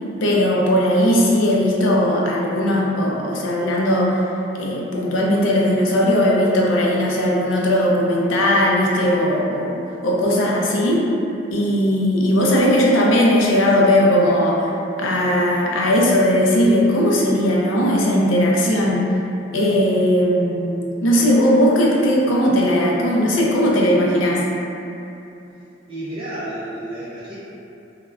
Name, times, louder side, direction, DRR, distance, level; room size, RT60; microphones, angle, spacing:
voice 1, 0.2-4.2 4.5-9.8 10.0-11.1 11.5-14.7 15.0-19.0 19.5-24.4, equal, 80° left, -3 dB, 0.5 m, -18 dB
voice 2, 25.9-27.3, right 1 dB, 25° right, -11 dB, 0.4 m, -31 dB
2.2 x 2.1 x 3.5 m, 2.8 s
head